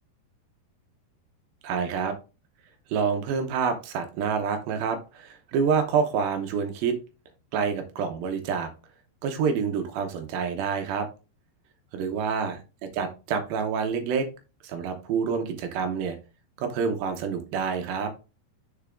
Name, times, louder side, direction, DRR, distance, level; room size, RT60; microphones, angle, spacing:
voice 1, 1.6-2.1 2.9-7.0 7.5-8.7 9.2-11.1 11.9-12.6 12.9-14.3 14.6-16.2 16.6-18.1, right 6 dB, 75° right, 6 dB, 2.5 m, -27 dB
6.7 x 6.7 x 2.5 m, 0.32 s
omnidirectional pair, 4.7 m